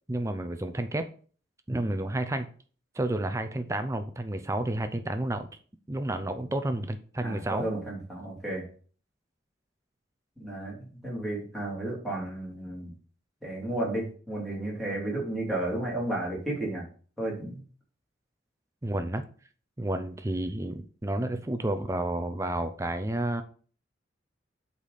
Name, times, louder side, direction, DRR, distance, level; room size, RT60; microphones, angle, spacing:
voice 1, 0.1-1.1 1.7-2.5 2.9-5.5 5.9-7.7 18.8-19.2 19.8-23.4, right 1 dB, 15° right, 8 dB, 0.5 m, -30 dB
voice 2, 7.2-8.6 10.4-12.9 13.4-16.8 17.2-17.6, right 1 dB, ahead, -5 dB, 2.8 m, -33 dB
8.4 x 4.1 x 5.0 m, 0.43 s
head